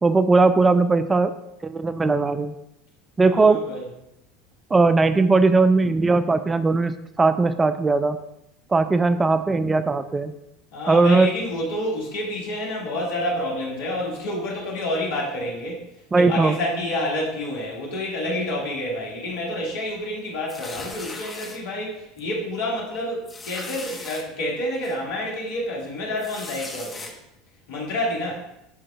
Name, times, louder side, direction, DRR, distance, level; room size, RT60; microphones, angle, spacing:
voice 1, 0.0-1.3 1.6-2.5 3.2-3.6 4.7-8.2 8.7-10.3 10.9-11.3 16.1-16.6, right 3 dB, 20° right, 11 dB, 0.4 m, -19 dB
voice 2, 3.2-3.9 10.7-15.9 16.1-27.1 27.7-28.4, left 1 dB, 65° left, -3 dB, 2.0 m, -28 dB
sound 1, 20.5-21.6 22.2-22.3 22.6-22.7 23.3-24.2 24.8-24.9 26.2-27.1, left 3 dB, 25° left, 1.1 m, -37 dB
11.0 x 3.8 x 2.4 m, 0.84 s
hypercardioid pair, 75°, 0 cm